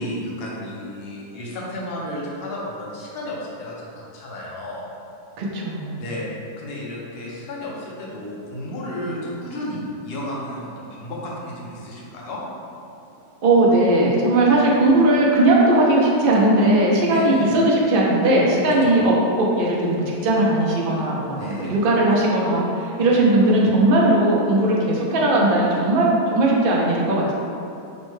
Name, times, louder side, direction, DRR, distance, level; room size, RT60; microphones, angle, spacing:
voice 1, 0.0-4.9 6.0-6.3 6.6-12.4 17.1-17.5 18.8-19.0 21.4-21.7, left 1 dB, 55° left, -4 dB, 0.7 m, -32 dB
voice 2, 5.4-6.0 13.4-27.3, right 1 dB, 85° right, -4 dB, 0.4 m, -18 dB
5.4 x 2.1 x 3.1 m, 2.7 s
omnidirectional pair, 1.7 m